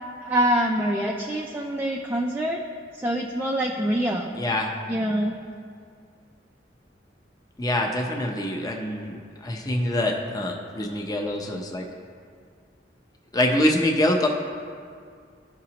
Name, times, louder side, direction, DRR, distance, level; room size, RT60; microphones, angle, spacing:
voice 1, 0.2-2.6 2.9-4.4 4.9-5.4, right 1 dB, 10° right, -1 dB, 0.4 m, -25 dB
voice 2, 4.3-4.7 7.6-11.9 13.3-14.3, left 1 dB, 20° left, 1 dB, 0.7 m, -25 dB
13.5 x 5.0 x 2.9 m, 2.1 s
head